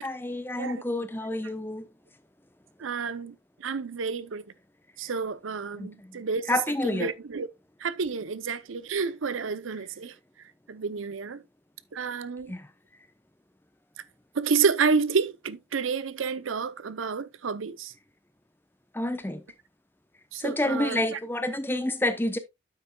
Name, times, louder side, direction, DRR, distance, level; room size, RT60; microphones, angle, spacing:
voice 1, 0.0-1.8 5.8-7.1 12.5-12.7 18.9-19.4 20.4-22.4, left 1 dB, 10° left, 0.7 m, -29 dB
voice 2, 2.8-3.3 3.6-4.4 5.0-6.6 6.8-7.5 7.8-10.1 10.7-11.4 11.9-12.5 14.3-17.9 20.3-21.2, right 5 dB, 90° right, 0.6 m, -29 dB
9.0 x 8.3 x 2.3 m
head